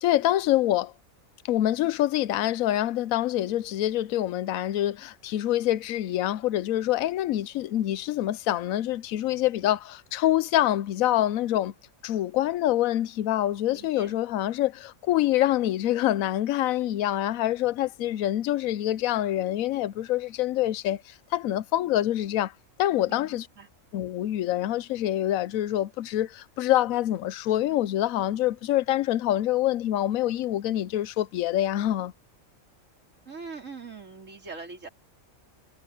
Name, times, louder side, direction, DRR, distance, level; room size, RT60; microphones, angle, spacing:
voice 1, 0.0-0.9 1.5-11.7 12.0-22.5 22.8-23.5 23.9-32.1, left 13 dB, 90° left, 1.0 m, -26 dB
voice 2, 13.7-14.1 23.1-23.7 33.3-34.9, right 4 dB, 65° right, 4.3 m, -42 dB
omnidirectional pair, 1.4 m